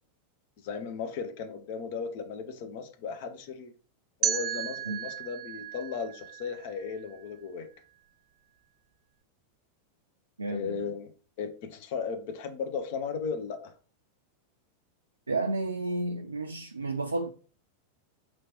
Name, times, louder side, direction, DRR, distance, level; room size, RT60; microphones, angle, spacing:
voice 1, 0.6-3.7 4.2-7.7 10.5-11.1 11.4-13.7, left 5 dB, 50° left, 0.7 m, -36 dB
sound 1, 4.2-7.2, right 9 dB, 35° right, 0.7 m, -34 dB
voice 2, 10.4-10.8 15.3-17.3, right 2 dB, 80° right, 0.3 m, -31 dB
4.3 x 3.0 x 2.9 m
figure-of-eight pair, 90°, 0 cm